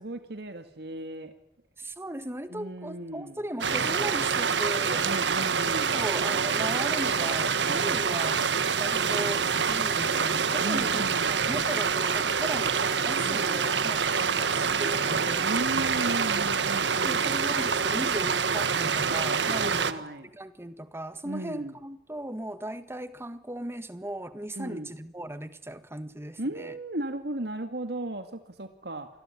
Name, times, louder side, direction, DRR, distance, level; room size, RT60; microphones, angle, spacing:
voice 1, 0.0-1.3 2.5-3.4 5.0-5.9 10.6-11.4 13.2-13.7 15.4-17.4 19.6-20.3 21.2-21.8 24.6-24.9 26.4-29.1, right 1 dB, 65° right, 2.2 m, -36 dB
voice 2, 1.8-5.1 5.9-8.4 8.8-15.6 17.0-20.0 20.3-26.7, right 1 dB, 15° right, 1.6 m, -37 dB
sound 1, 3.6-19.9, right 6 dB, 90° right, 1.5 m, -26 dB
27.5 x 21.0 x 9.9 m
head